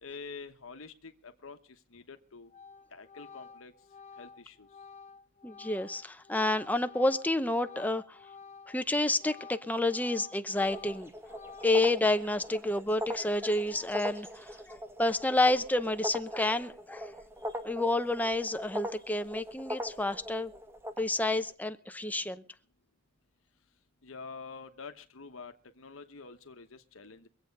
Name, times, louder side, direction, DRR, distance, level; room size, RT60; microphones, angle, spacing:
voice 1, 0.0-2.5 2.9-3.7 4.2-4.7 24.0-27.3, left 4 dB, 80° left, 1.1 m, -47 dB
Organ, 1.9-2.2 2.5-8.8 9.1-12.0, left 5 dB, 35° left, 0.8 m, -51 dB
voice 2, 5.4-8.2 8.7-11.1 11.6-17.1 17.6-20.5 21.0-22.4, left 2 dB, 10° left, 0.8 m, -29 dB
sound 1, 10.6-21.5, equal, 10° right, 1.1 m, -41 dB
24.0 x 8.3 x 5.3 m
head